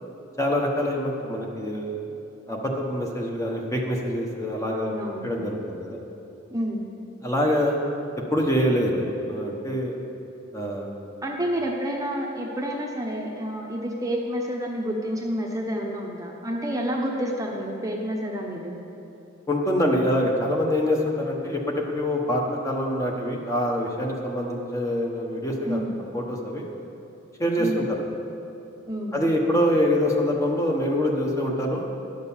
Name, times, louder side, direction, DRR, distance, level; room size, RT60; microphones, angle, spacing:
voice 1, 0.4-2.0 2.5-4.9 5.2-6.0 7.2-7.8 8.3-9.9 10.5-10.9 19.5-25.8 26.1-26.7 27.4-28.0 29.1-31.9, equal, 15° left, 0 dB, 1.0 m, -25 dB
voice 2, 4.7-5.3 6.5-6.8 11.2-18.8 25.7-25.9 27.6-27.9 28.9-29.2, equal, 15° right, 0 dB, 0.9 m, -29 dB
11.0 x 6.5 x 7.2 m, 2.8 s
head